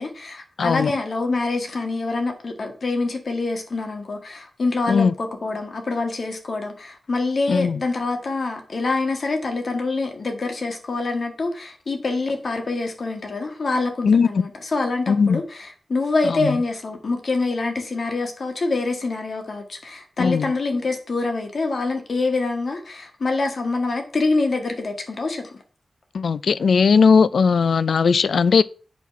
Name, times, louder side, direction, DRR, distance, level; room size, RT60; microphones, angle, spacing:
voice 1, 0.0-25.6, left 3 dB, 55° left, 1.7 m, -25 dB
voice 2, 0.6-0.9 4.9-5.1 7.5-7.8 14.0-14.3 15.1-15.4 20.2-20.5 26.1-28.6, left 5 dB, 80° left, 0.4 m, -17 dB
8.4 x 4.2 x 5.8 m
wide cardioid pair, 120°, 0 cm